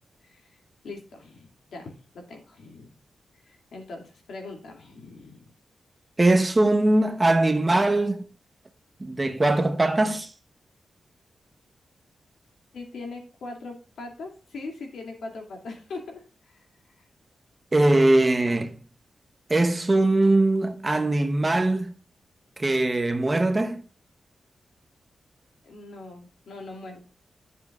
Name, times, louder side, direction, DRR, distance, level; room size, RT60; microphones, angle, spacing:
voice 1, 0.2-0.6 0.8-3.0 3.4-5.5 12.7-16.6 25.6-27.0, left 3 dB, 80° left, 2.6 m, -41 dB
voice 2, 6.2-8.2 9.0-10.3 17.7-18.7 19.5-21.9 22.6-23.8, right 2 dB, 20° right, 0.8 m, -21 dB
11.5 x 7.3 x 2.4 m
wide cardioid pair, 180°, 0 cm